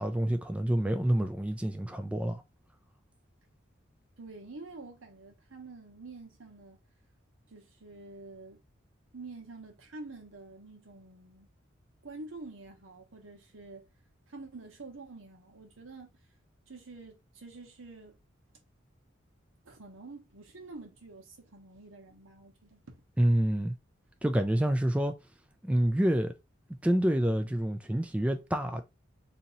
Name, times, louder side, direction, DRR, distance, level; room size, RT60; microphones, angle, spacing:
voice 1, 0.0-2.4 23.2-23.7 24.2-25.1 25.6-26.3 26.8-28.8, right 1 dB, 5° right, 0.3 m, -27 dB
voice 2, 4.2-6.8 7.5-8.6 9.1-11.5 12.0-13.9 14.3-16.1 16.7-18.2 19.6-23.0, right 3 dB, 85° right, 1.1 m, -47 dB
2.9 x 2.8 x 3.9 m
head